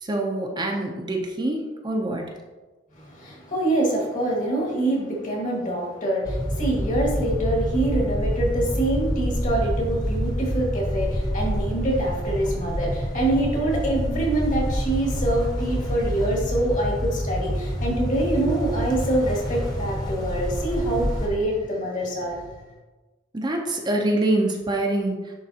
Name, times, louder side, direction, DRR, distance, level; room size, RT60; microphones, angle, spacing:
voice 1, 0.0-2.2 23.3-25.2, right 1 dB, 25° right, 1 dB, 0.6 m, -25 dB
voice 2, 2.9-22.6, right 1 dB, 45° left, -2 dB, 1.7 m, -25 dB
sound 1, 6.2-21.3, equal, 20° left, 1.0 m, -27 dB
10.5 x 3.4 x 2.8 m, 1.2 s
head